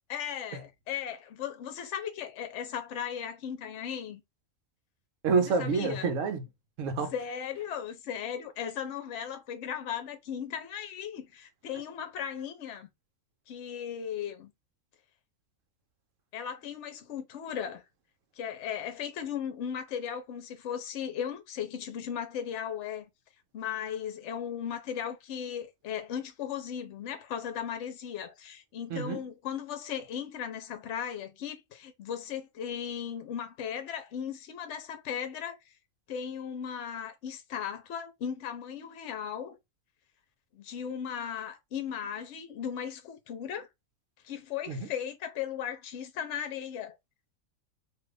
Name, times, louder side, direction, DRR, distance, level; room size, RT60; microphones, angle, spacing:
voice 1, 0.1-4.2 5.6-6.1 7.1-12.9 13.5-14.5 16.3-17.8 18.4-23.1 23.5-35.6 36.1-39.6 40.5-43.7 44.2-47.0, left 8 dB, 65° left, 0.9 m, -37 dB
voice 2, 5.2-6.4 6.8-7.1 28.9-29.2 44.7-44.9, right 4 dB, 70° right, 1.0 m, -28 dB
2.6 x 2.4 x 3.2 m
omnidirectional pair, 1.4 m